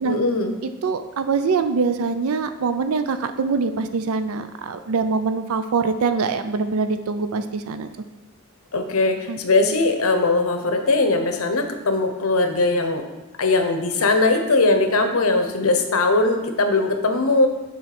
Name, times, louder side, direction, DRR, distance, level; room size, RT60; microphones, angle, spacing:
voice 1, 0.0-0.5 8.7-13.0 13.4-17.5, left 2 dB, 80° left, 6 dB, 0.9 m, -20 dB
voice 2, 0.6-7.9 9.3-9.4, right 4 dB, 80° right, 10 dB, 0.4 m, -24 dB
7.1 x 3.7 x 5.9 m, 1.1 s
head